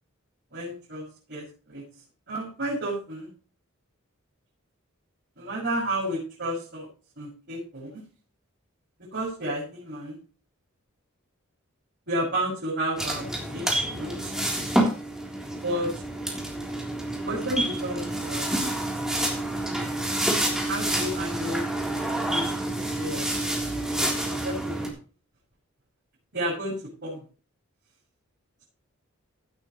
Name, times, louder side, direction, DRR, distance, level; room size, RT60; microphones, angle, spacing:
voice 1, 0.5-1.0 1.3-1.8 2.3-3.3 5.4-6.9 7.2-8.0 9.1-10.2 12.1-14.3 15.6-16.0 17.1-18.5 20.7-21.6 22.2-23.3 23.6-24.9 26.3-26.7 27.0-27.2, right 1 dB, 55° right, -6 dB, 6.5 m, -32 dB
small checkout, 13.0-24.9, right 1 dB, 5° right, 3.5 m, -28 dB
16.5 x 9.3 x 3.1 m, 0.38 s
head